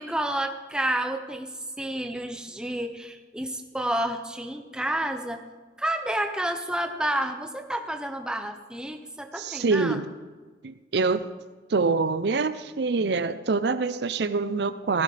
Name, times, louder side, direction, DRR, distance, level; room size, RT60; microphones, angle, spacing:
voice 1, 0.0-1.5 1.8-5.4 5.8-10.0, right 1 dB, 5° right, 6 dB, 0.7 m, -30 dB
voice 2, 9.4-10.1 10.6-11.2 11.7-15.0, right 4 dB, 70° right, 13 dB, 0.5 m, -25 dB
16.5 x 15.0 x 3.4 m, 1.4 s
head